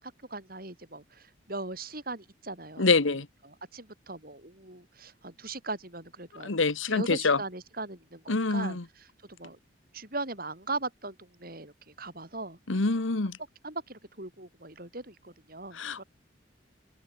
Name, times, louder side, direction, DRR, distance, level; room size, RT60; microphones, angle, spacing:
voice 1, 0.0-3.2 3.7-6.5 6.9-9.6 9.9-12.6 13.6-16.0, right 2 dB, 50° right, 7.4 m, -39 dB
voice 2, 2.8-3.3 6.4-7.4 8.3-8.8 12.7-13.4 15.7-16.0, left 3 dB, 85° left, 1.3 m, -26 dB
open air
head